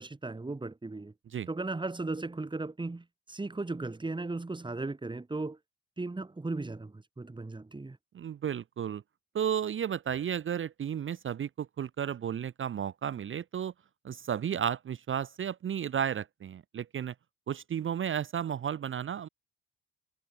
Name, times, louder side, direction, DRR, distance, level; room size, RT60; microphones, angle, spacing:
voice 1, 0.0-1.1 1.5-5.6 6.0-8.0, right 3 dB, 15° right, 2.1 m, -36 dB
voice 2, 8.1-9.0 9.3-13.7 14.0-17.1 17.5-19.3, right 8 dB, 40° right, 0.7 m, -33 dB
cardioid pair, 90°, 30 cm